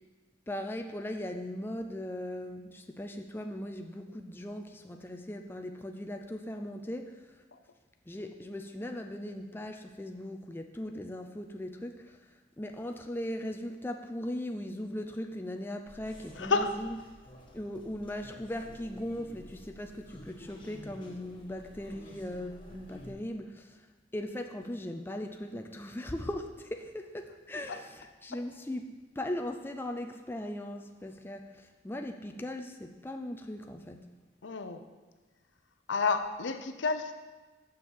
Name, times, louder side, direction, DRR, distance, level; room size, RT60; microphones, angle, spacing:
voice 1, 0.5-7.4 8.1-12.3 12.6-16.9 17.5-34.1, left 1 dB, 10° left, 4 dB, 0.4 m, -39 dB
sound 1, 15.9-23.1, equal, 25° left, 1.4 m, -51 dB
voice 2, 16.4-16.7 27.7-27.8 34.4-34.8 35.9-37.1, left 4 dB, 70° left, 9 dB, 0.7 m, -30 dB
6.9 x 6.3 x 7.3 m, 1.3 s
head